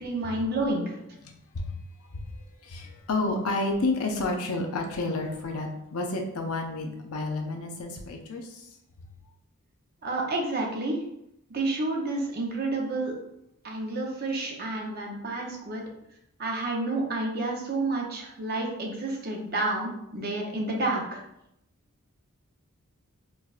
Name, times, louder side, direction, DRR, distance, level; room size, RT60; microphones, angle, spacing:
voice 1, 0.0-1.0 10.0-11.0 11.5-13.1 13.6-15.8 16.4-21.2, right 2 dB, 45° right, 0 dB, 0.7 m, -30 dB
voice 2, 1.2-1.7 2.1-2.2 2.6-8.7, left 2 dB, 90° left, 2 dB, 0.6 m, -30 dB
4.5 x 2.3 x 2.4 m, 0.79 s
head